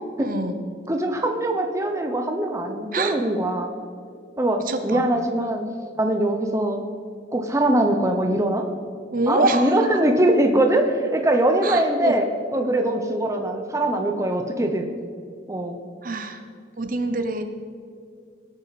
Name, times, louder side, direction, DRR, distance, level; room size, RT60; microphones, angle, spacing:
voice 1, 0.2-0.6 2.9-3.2 4.7-5.1 9.1-9.8 11.6-12.1 16.0-16.4 16.8-17.4, right 2 dB, 45° right, 7 dB, 0.9 m, -25 dB
voice 2, 0.9-3.7 4.4-5.7 6.0-6.9 7.3-8.7 9.3-14.9 15.5-15.8, right 1 dB, 15° right, 4 dB, 0.8 m, -22 dB
20.0 x 8.8 x 4.2 m, 2.3 s
head